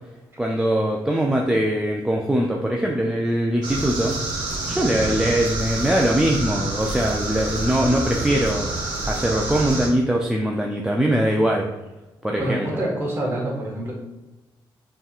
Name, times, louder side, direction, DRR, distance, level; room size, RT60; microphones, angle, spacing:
voice 1, 0.4-4.1 4.7-8.7 9.1-11.7 12.2-12.7, right 1 dB, 10° right, -1 dB, 0.3 m, -22 dB
sound 1, 3.6-9.9, right 2 dB, 55° right, 1.3 m, -28 dB
voice 2, 12.4-13.9, right 1 dB, 25° right, -3 dB, 1.4 m, -26 dB
5.5 x 2.9 x 2.4 m, 1.0 s
cardioid pair, 125°, 9 cm